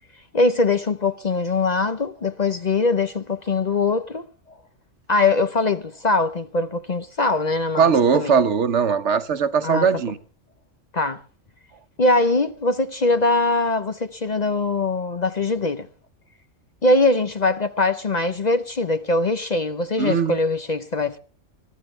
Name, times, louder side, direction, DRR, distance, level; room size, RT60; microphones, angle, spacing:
voice 1, 0.3-4.2 5.1-8.4 9.6-9.9 10.9-11.2 12.0-15.9 16.8-21.2, left 3 dB, 40° left, 0.8 m, -22 dB
voice 2, 7.8-10.2 20.0-20.4, right 6 dB, 70° right, 1.2 m, -19 dB
22.5 x 13.0 x 3.2 m
omnidirectional pair, 1.3 m